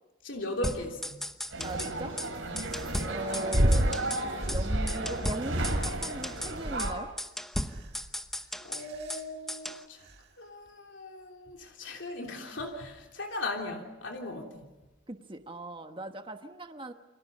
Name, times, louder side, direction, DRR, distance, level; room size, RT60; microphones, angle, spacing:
voice 1, 0.2-1.3 2.4-2.7 8.6-10.0 10.4-14.7, left 2 dB, 65° left, 1 dB, 3.2 m, -38 dB
sound 1, 0.6-1.9 2.2-2.3 2.6-4.2 4.5-4.6 4.9-6.5 6.8-6.9 7.2-9.2 9.5-9.8, equal, ahead, 0.9 m, -36 dB
sound 2, 1.5-6.9, right 2 dB, 85° right, 6.1 m, -34 dB
voice 2, 1.6-2.1 3.0-3.9 4.5-7.1 15.1-16.9, right 1 dB, 25° right, 6 dB, 1.2 m, -39 dB
sound 3, 3.5-4.0 4.4-5.0 5.5-6.1 6.6-7.1 7.7-8.1 8.8-9.2 10.1-10.2, right 1 dB, 55° right, 1.8 m, -28 dB
29.0 x 25.5 x 5.5 m, 1.1 s
head